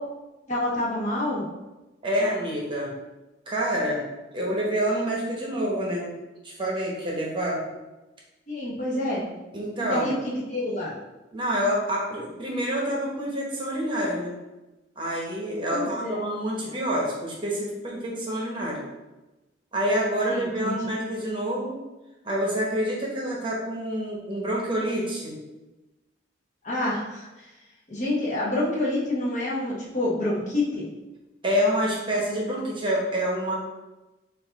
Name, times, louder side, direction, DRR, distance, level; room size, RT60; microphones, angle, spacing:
voice 1, 0.5-1.5 8.5-9.2 9.8-10.2 10.5-10.9 15.7-16.2 16.6-16.7 20.3-20.8 26.6-27.5 27.9-30.9, left 1 dB, 40° left, -6 dB, 1.1 m, -27 dB
voice 2, 2.0-2.9 3.5-4.0 4.3-6.1 6.4-7.6 9.5-10.1 11.3-14.3 15.0-18.8 19.7-21.7 22.2-25.4 31.4-33.5, equal, 25° right, -3 dB, 0.9 m, -27 dB
4.6 x 2.6 x 4.0 m, 1.1 s
head